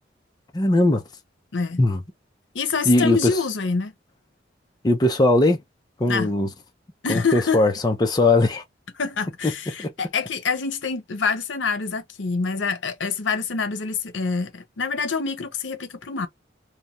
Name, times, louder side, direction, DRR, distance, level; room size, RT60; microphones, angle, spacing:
voice 1, 0.5-1.0 1.8-2.0 2.9-3.3 4.8-5.6 6.0-6.5 7.1-8.6 9.8-9.9, left 2 dB, 20° left, 0.5 m, -19 dB
voice 2, 2.5-3.9 6.1-6.3 7.0-7.6 9.0-16.3, left 5 dB, 85° left, 0.7 m, -26 dB
3.0 x 2.2 x 2.5 m
head